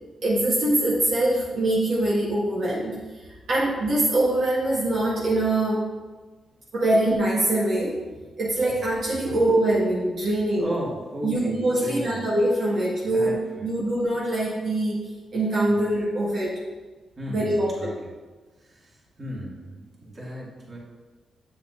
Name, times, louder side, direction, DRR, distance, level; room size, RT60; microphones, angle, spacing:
voice 1, 0.2-3.0 3.5-5.8 6.7-8.0 8.4-10.7 11.2-15.0 15.3-16.6 17.3-18.0, right 1 dB, 65° right, -7 dB, 1.7 m, -23 dB
voice 2, 10.6-12.3 12.7-12.8 13.1-13.7 15.6-15.9 17.2-17.9 18.7-18.8 19.2-20.8, right 1 dB, 40° right, -4 dB, 2.3 m, -35 dB
7.8 x 6.9 x 2.6 m, 1.3 s
cardioid pair, 70°, 0 cm